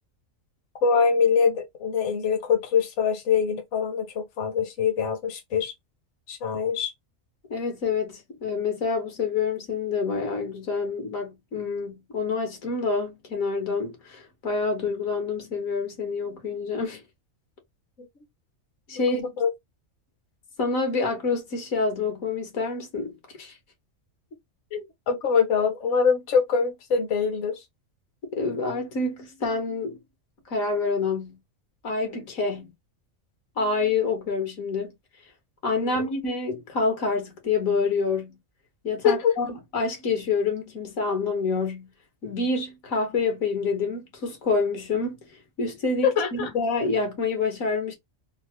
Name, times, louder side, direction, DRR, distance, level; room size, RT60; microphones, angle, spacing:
voice 1, 0.8-5.7 6.3-6.9 18.0-18.1 19.1-19.5 24.7-27.6 35.8-36.1 39.0-39.3 46.0-46.5, left 6 dB, 65° left, 1.1 m, -24 dB
voice 2, 7.5-17.0 18.9-19.3 20.6-23.6 28.4-30.0 30.5-31.4 31.8-32.7 33.6-34.9 35.6-38.4 38.8-41.9 42.2-45.2 45.6-47.9, left 4 dB, 85° left, 1.6 m, -27 dB
3.5 x 2.1 x 2.9 m
omnidirectional pair, 1.4 m